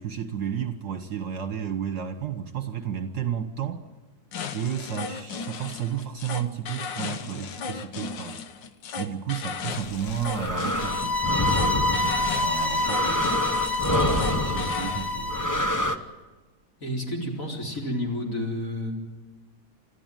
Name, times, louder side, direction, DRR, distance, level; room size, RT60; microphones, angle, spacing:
voice 1, 0.0-3.9 4.5-8.4 9.0-13.4 13.9-15.6, right 8 dB, 55° right, 8 dB, 1.6 m, -32 dB
sound 1, 4.3-15.1, left 6 dB, 65° left, 1.7 m, -36 dB
sound 2, 9.9-16.0, left 1 dB, 20° left, 0.5 m, -28 dB
sound 3, 10.8-15.8, left 2 dB, ahead, 0.8 m, -27 dB
voice 2, 16.8-18.9, left 1 dB, 40° left, -1 dB, 4.5 m, -30 dB
29.5 x 13.5 x 9.1 m, 1.3 s
omnidirectional pair, 2.2 m